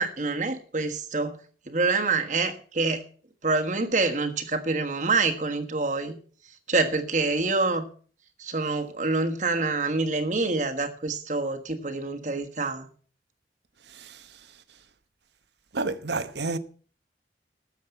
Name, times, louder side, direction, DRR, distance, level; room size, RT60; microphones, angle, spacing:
voice 1, 0.0-1.4 1.7-3.0 3.4-6.2 6.7-7.9 8.4-12.9, right 3 dB, 45° right, 1.4 m, -26 dB
voice 2, 13.9-14.4 15.7-16.6, right 3 dB, 80° right, 1.0 m, -31 dB
13.0 x 7.4 x 8.0 m
head